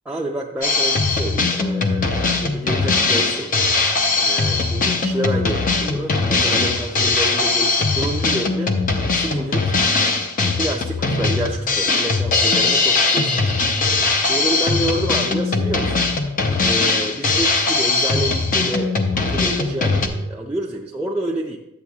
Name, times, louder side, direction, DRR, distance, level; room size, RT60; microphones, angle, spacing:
voice 1, 0.1-3.5 4.2-8.7 9.1-9.7 10.4-13.5 14.2-16.1 16.6-21.6, right 1 dB, 5° right, -3 dB, 0.5 m, -28 dB
Drum kit, 0.6-20.1, left 3 dB, 35° left, 0.7 m, -20 dB
10.5 x 7.7 x 2.3 m, 0.89 s
head